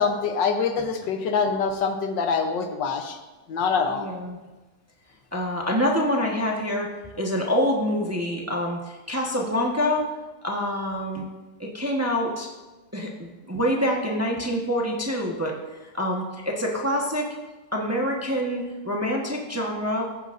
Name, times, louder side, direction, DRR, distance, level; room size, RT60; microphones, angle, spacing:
voice 1, 0.0-3.2 3.5-4.1, left 5 dB, 80° left, 6 dB, 1.6 m, -25 dB
voice 2, 3.9-4.4 5.3-10.1 10.4-11.3 11.6-12.5 12.9-15.6 15.9-17.4 17.7-20.1, equal, 10° right, -1 dB, 1.0 m, -26 dB
16.0 x 9.3 x 2.6 m, 1.2 s
omnidirectional pair, 2.0 m